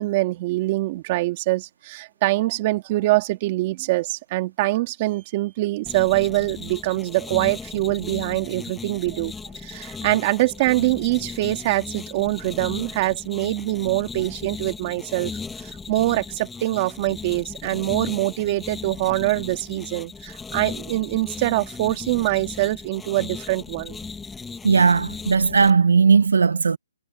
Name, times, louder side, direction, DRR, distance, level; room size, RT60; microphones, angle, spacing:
voice 1, 0.0-9.3 9.6-15.3 15.6-24.0, right 19 dB, 30° right, 2.3 m, -24 dB
sound 1, 5.9-25.7, left 4 dB, 5° left, 6.5 m, -37 dB
voice 2, 24.6-26.8, right 5 dB, 90° right, 0.8 m, -17 dB
hypercardioid pair, 160°, 0 cm